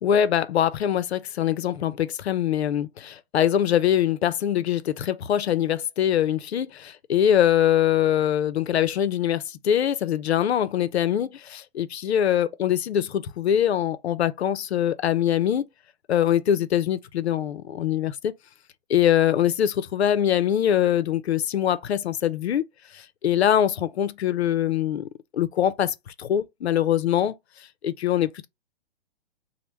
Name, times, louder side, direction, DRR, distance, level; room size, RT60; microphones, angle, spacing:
voice 1, 0.0-15.7 16.1-18.3 18.9-22.6 22.9-25.1 25.3-27.3 27.8-28.5, left 10 dB, 80° left, 0.6 m, -23 dB
3.0 x 2.1 x 3.4 m
hypercardioid pair, 125°, 32 cm